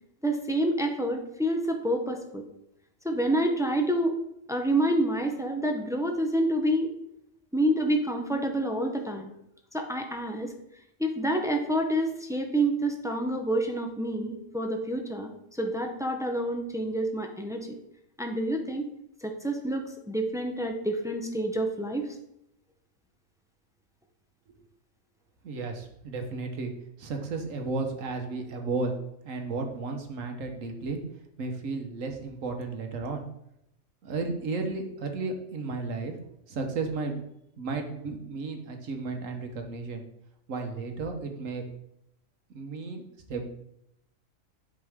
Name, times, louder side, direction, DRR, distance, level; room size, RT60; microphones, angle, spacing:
voice 1, 0.2-2.4 3.0-4.1 4.5-6.9 7.5-9.3 9.7-10.5 11.0-17.8 18.2-18.9 19.2-22.1, right 1 dB, 5° right, 4 dB, 0.5 m, -28 dB
voice 2, 25.4-26.7 27.0-28.9 29.2-31.0 31.4-33.2 34.0-36.1 36.5-37.2 37.6-40.0 40.5-41.6 42.5-43.0 43.3-43.4, right 3 dB, 70° right, 4 dB, 1.5 m, -33 dB
11.0 x 5.2 x 3.6 m, 0.81 s
omnidirectional pair, 1.4 m